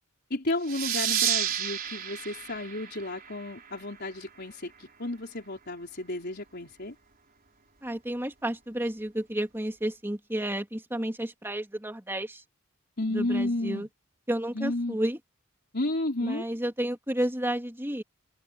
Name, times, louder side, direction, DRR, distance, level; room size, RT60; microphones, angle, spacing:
voice 1, 0.3-6.9 13.0-13.9 14.5-15.0 15.7-16.4, left 2 dB, 50° left, 4.7 m, -32 dB
sound 1, 0.7-3.9, right 9 dB, 45° right, 4.2 m, -31 dB
voice 2, 7.8-12.4 13.1-13.9 14.3-15.2 16.2-18.0, right 1 dB, 10° right, 2.9 m, -31 dB
head